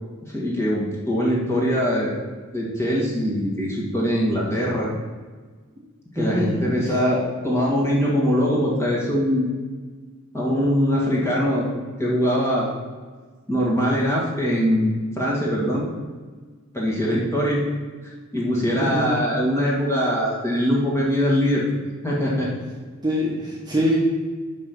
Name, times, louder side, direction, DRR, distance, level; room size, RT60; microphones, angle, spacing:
voice 1, 0.2-2.1 2.5-4.9 6.1-9.5 10.3-11.6 12.0-12.7 13.5-15.8 16.7-17.6 18.3-21.6 22.0-22.5, equal, 10° left, -5 dB, 1.9 m, -22 dB
voice 2, 6.2-6.9 18.8-19.2 23.0-24.0, equal, 20° right, -5 dB, 1.2 m, -24 dB
5.7 x 5.4 x 6.1 m, 1.4 s
head